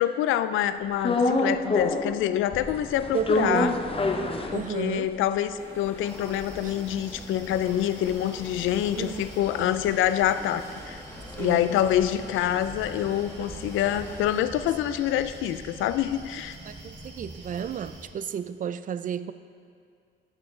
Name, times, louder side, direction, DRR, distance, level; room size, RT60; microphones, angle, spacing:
voice 1, 0.0-3.7 4.5-11.0 11.4-16.6, left 11 dB, 85° left, 12 dB, 0.4 m, -26 dB
sound 1, 1.0-2.2 2.5-5.1 5.5-5.6 5.8-10.3 10.6-14.7, left 2 dB, 30° left, 0.7 m, -29 dB
voice 2, 3.1-3.8 4.5-5.1 6.6-6.7 9.0-9.2 11.4-11.6 16.7-19.3, right 8 dB, 45° right, 13 dB, 0.4 m, -32 dB
sound 2, 5.6-14.4, left 1 dB, 10° left, 1.3 m, -46 dB
sound 3, 6.0-18.1, right 2 dB, 60° right, 1.8 m, -45 dB
14.0 x 6.6 x 3.2 m, 2.3 s
cardioid pair, 90°, 20 cm